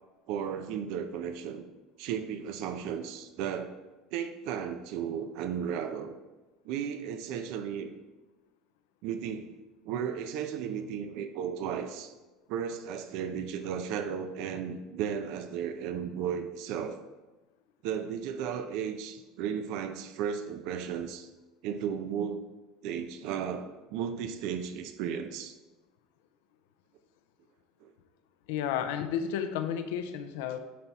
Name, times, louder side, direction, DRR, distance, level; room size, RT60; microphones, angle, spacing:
voice 1, 0.3-1.7 2.0-3.7 4.1-6.1 6.7-7.9 9.0-9.5 9.8-12.1 12.5-17.0 17.8-21.3 21.6-22.5 22.8-25.5 27.8-27.9, right 8 dB, 70° right, 8 dB, 0.6 m, -34 dB
voice 2, 28.5-30.6, left 8 dB, 85° left, 8 dB, 0.7 m, -32 dB
9.5 x 4.2 x 4.6 m, 1.1 s
supercardioid pair, 120°, 0 cm